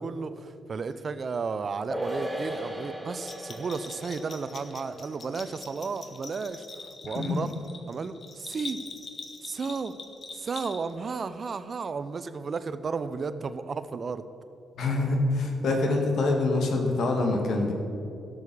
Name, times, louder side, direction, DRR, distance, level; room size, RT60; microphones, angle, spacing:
voice 1, 0.0-6.7 7.1-7.5 7.9-8.8 9.4-9.9 10.3-14.2, right 5 dB, 50° right, 12 dB, 0.6 m, -33 dB
sound 1, 1.9-8.6 8.8-8.9, right 1 dB, 10° right, 1.7 m, -39 dB
Bell, 3.2-11.1, left 3 dB, 50° left, 1.4 m, -43 dB
voice 2, 7.0-7.4 14.8-17.7, left 2 dB, 65° left, 2 dB, 1.6 m, -25 dB
12.0 x 6.4 x 7.2 m, 2.7 s
hypercardioid pair, 40°, 0 cm